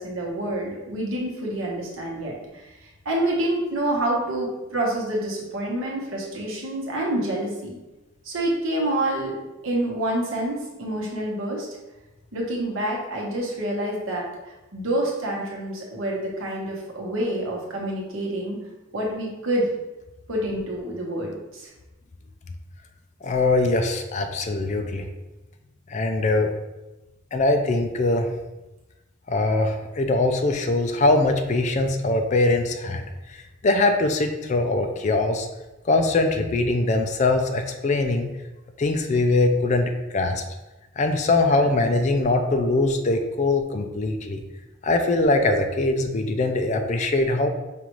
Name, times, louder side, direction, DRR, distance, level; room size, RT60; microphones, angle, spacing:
voice 1, 0.0-2.7 3.0-7.8 8.2-9.4 9.6-11.7 12.3-18.6 18.9-19.7 20.3-21.7, right 1 dB, 80° right, -2 dB, 1.0 m, -27 dB
voice 2, 23.2-25.0 25.9-26.5 27.3-28.3 29.3-33.0 33.3-35.5 35.9-38.3 38.8-40.4 41.0-44.4 44.8-47.5, left 2 dB, 35° left, 5 dB, 0.3 m, -22 dB
5.3 x 2.4 x 3.0 m, 1.1 s
head